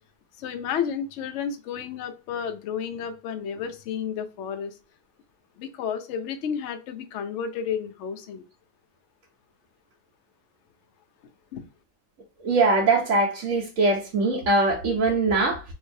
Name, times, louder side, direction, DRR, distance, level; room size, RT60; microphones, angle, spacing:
voice 1, 0.4-4.8 5.6-8.4 11.5-11.6, left 7 dB, 85° left, 0.6 m, -31 dB
voice 2, 12.4-15.6, right 3 dB, 55° right, 1.0 m, -22 dB
3.8 x 2.6 x 2.6 m
omnidirectional pair, 1.9 m